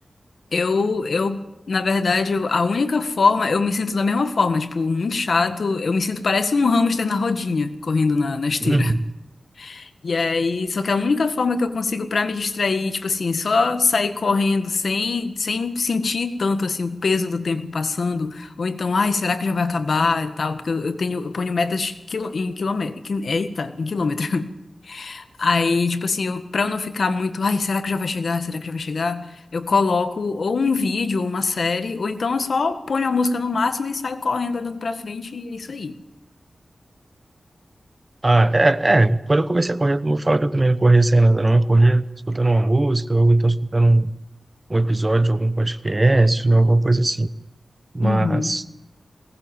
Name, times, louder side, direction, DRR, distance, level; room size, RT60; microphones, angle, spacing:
voice 1, 0.5-1.4 1.7-9.0 9.6-24.5 24.8-29.2 29.5-36.0 48.0-48.6, left 4 dB, 70° left, 9 dB, 1.7 m, -23 dB
voice 2, 8.6-9.1 38.2-44.1 44.7-47.3 47.9-48.6, right 2 dB, 30° right, 14 dB, 0.9 m, -18 dB
21.0 x 19.0 x 7.4 m, 0.96 s
wide cardioid pair, 85°, 0 cm